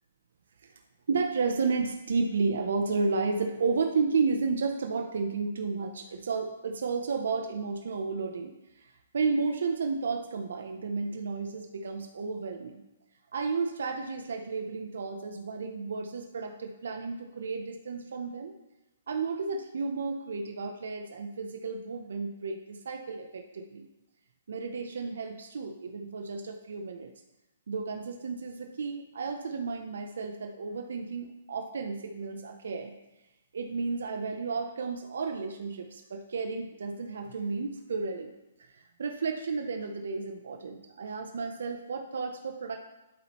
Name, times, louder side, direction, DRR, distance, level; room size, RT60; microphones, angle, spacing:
voice 1, 1.1-12.8 13.3-18.5 19.1-23.9 24.5-27.1 27.7-32.9 33.5-38.3 38.7-42.8, right 4 dB, 75° right, 4 dB, 0.6 m, -32 dB
11.0 x 4.2 x 3.0 m, 0.99 s
hypercardioid pair, 160°, 0 cm